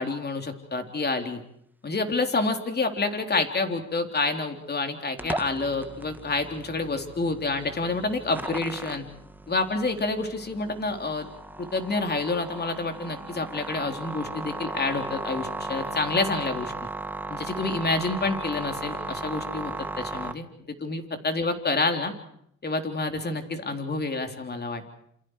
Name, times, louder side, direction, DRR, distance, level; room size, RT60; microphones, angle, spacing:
voice 1, 0.0-1.4 1.8-9.0 9.5-11.3 11.6-16.7 17.3-22.1 22.6-24.9, left 3 dB, 35° left, 5 dB, 3.9 m, -28 dB
sound 1, 5.2-20.3, right 2 dB, 5° right, 1.5 m, -36 dB
28.5 x 28.5 x 4.9 m, 0.69 s
cardioid pair, 90°, 30 cm